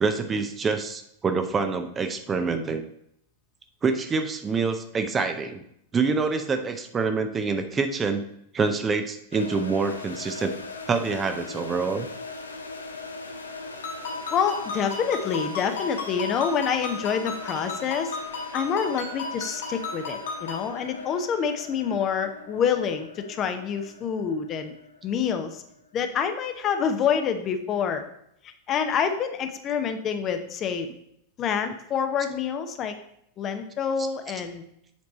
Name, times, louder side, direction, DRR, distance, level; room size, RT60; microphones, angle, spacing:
voice 1, 0.0-2.8 3.8-5.6 5.9-8.2 8.5-10.5 10.9-12.1, right 4 dB, 20° right, 7 dB, 0.6 m, -26 dB
sound 1, 9.3-26.2, left 3 dB, 75° left, 0.6 m, -40 dB
Ringtone, 13.8-20.7, left 3 dB, 60° left, 2.7 m, -35 dB
voice 2, 14.3-18.1 18.5-24.7 25.0-25.6 25.9-28.0 28.4-30.9 31.4-32.9 33.4-34.6, left 7 dB, 30° left, 7 dB, 0.7 m, -27 dB
7.4 x 4.6 x 4.1 m, 0.74 s
figure-of-eight pair, 90°, 0 cm